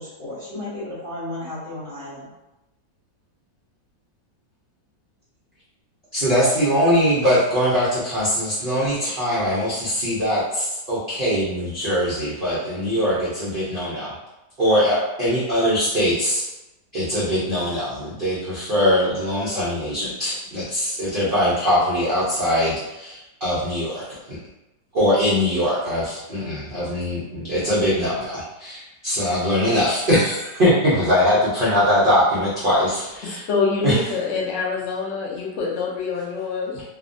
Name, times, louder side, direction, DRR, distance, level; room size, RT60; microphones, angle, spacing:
voice 1, 0.0-2.3, left 1 dB, 40° left, -11 dB, 0.8 m, -33 dB
voice 2, 6.1-14.1 14.6-16.5 16.9-24.4 24.9-33.4 33.8-34.0, equal, 65° right, -9 dB, 0.5 m, -21 dB
voice 3, 33.2-36.8, left 4 dB, 65° left, -3 dB, 0.7 m, -25 dB
2.9 x 2.1 x 2.5 m, 0.98 s
omnidirectional pair, 1.9 m